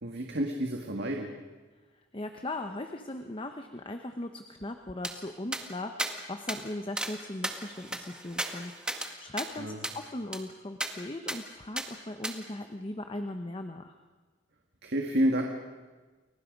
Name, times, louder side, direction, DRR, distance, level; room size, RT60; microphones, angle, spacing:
voice 1, 0.0-1.3 9.6-9.8 14.8-15.4, right 1 dB, 60° right, 2 dB, 1.9 m, -29 dB
voice 2, 2.1-8.7 9.2-13.9, left 1 dB, 25° left, 6 dB, 1.0 m, -38 dB
sound 1, 5.0-5.1 5.5-5.6 6.0-6.1 6.5-6.6 7.0-7.1 7.4-9.1 9.4-9.5 9.8-10.0 10.3-10.4 10.8-10.9 11.3-11.4 11.8-11.9 12.2-12.3, right 1 dB, 5° right, 1.8 m, -34 dB
30.0 x 22.5 x 5.3 m, 1.3 s
head